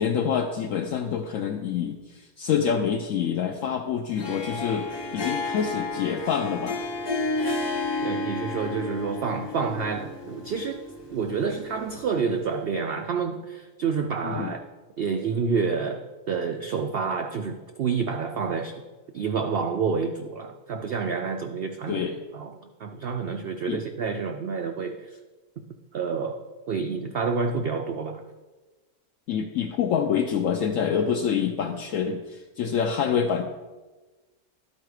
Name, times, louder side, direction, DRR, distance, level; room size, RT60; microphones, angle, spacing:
voice 1, 0.0-6.8 14.2-14.5 21.9-22.1 23.7-23.8 29.3-33.4, left 7 dB, 70° left, 3 dB, 0.9 m, -26 dB
Harp, 4.1-12.4, left 2 dB, 25° left, 0.7 m, -32 dB
voice 2, 8.0-10.8 11.1-14.6 15.0-18.8 19.1-22.1 22.3-25.1 25.9-28.2, right 5 dB, 75° right, 5 dB, 0.5 m, -28 dB
11.5 x 4.6 x 4.8 m, 1.2 s
omnidirectional pair, 1.6 m